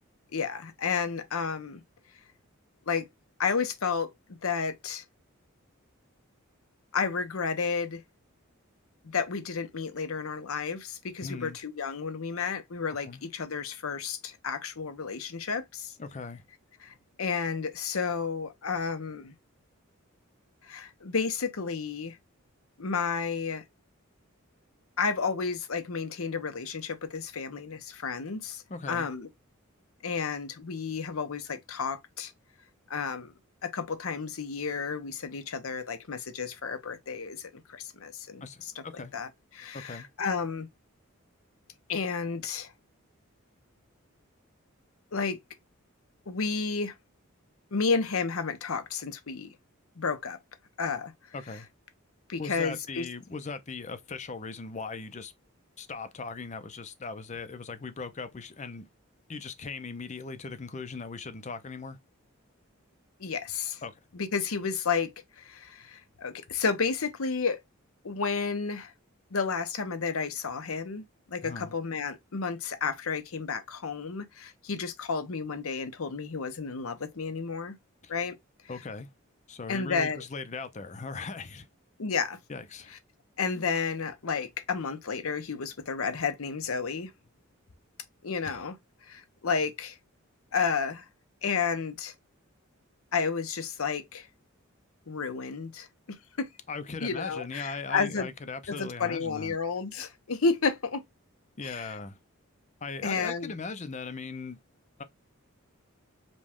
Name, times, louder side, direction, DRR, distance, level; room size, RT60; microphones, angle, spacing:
voice 1, 0.3-1.8 2.9-3.1 3.4-4.1 4.4-5.0 6.9-8.0 9.0-15.9 16.8-19.3 20.6-22.2 22.8-23.6 25.0-29.3 30.0-32.3 32.9-33.3 33.6-40.7 41.9-42.7 45.1-45.4 46.3-46.9 47.7-49.5 50.0-50.4 50.8-51.1 52.3-53.0 63.2-63.8 64.1-67.6 68.0-68.9 69.3-77.8 78.1-78.4 79.7-80.2 82.0-82.4 83.4-87.1 88.2-88.8 89.0-90.0 90.5-91.0 91.4-92.1 93.1-94.3 95.1-96.5 97.0-98.3 98.7-101.0 101.6-101.9 103.0-103.5, left 5 dB, 85° left, 0.8 m, -31 dB
voice 2, 11.2-11.6 13.0-13.2 16.0-16.4 28.7-29.1 38.4-39.1 39.7-40.1 51.3-51.7 52.4-55.3 55.8-58.9 59.3-62.0 63.8-63.9 71.4-71.7 78.0-78.1 78.7-79.1 79.5-81.7 82.5-82.9 88.4-88.6 96.7-99.6 101.6-102.2 102.8-104.6 105.0-105.1, left 4 dB, 35° left, 0.5 m, -39 dB
5.2 x 2.3 x 3.5 m
head